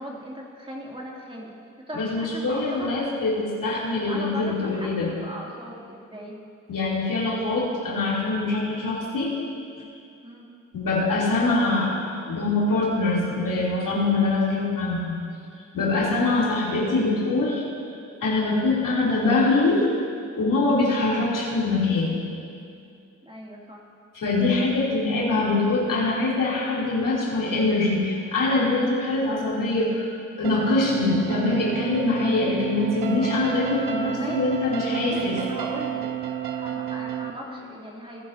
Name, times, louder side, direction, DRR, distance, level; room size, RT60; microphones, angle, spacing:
voice 1, 0.0-1.5 1.9-2.9 4.1-6.4 10.2-10.5 15.7-16.0 23.2-23.8 34.1-34.4 34.9-38.3, equal, 15° right, -3 dB, 2.8 m, -38 dB
voice 2, 1.9-5.1 6.7-9.3 9.8-9.9 10.7-11.9 12.3-15.2 15.7-17.6 18.2-19.9 20.3-22.2 24.1-30.1 30.4-35.4, left 2 dB, 65° left, -6 dB, 3.3 m, -23 dB
sound 1, 30.4-37.3, right 10 dB, 80° right, 0.8 m, -30 dB
19.0 x 10.5 x 2.8 m, 2.4 s
supercardioid pair, 45°, 34 cm